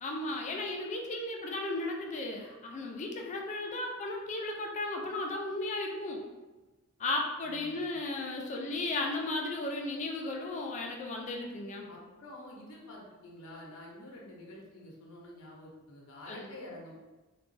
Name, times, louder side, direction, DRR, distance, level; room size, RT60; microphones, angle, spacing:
voice 1, 0.0-6.2 7.0-11.9 16.3-16.5, left 2 dB, 35° left, 1 dB, 0.4 m, -35 dB
voice 2, 7.4-7.9 11.9-16.9, left 1 dB, 75° left, -3 dB, 0.7 m, -48 dB
3.6 x 2.3 x 2.5 m, 1.2 s
head